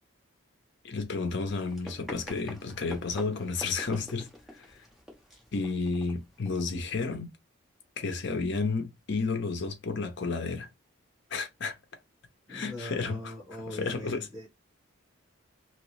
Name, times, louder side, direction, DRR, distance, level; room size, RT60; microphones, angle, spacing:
voice 1, 0.8-4.8 5.5-7.3 8.0-10.7 11.3-11.8 12.5-13.3 13.7-14.3, left 4 dB, 55° left, 0.6 m, -32 dB
Run, 1.7-7.0, equal, ahead, 0.8 m, -47 dB
voice 2, 12.5-14.5, equal, 20° right, 1.6 m, -41 dB
2.9 x 2.8 x 3.0 m
head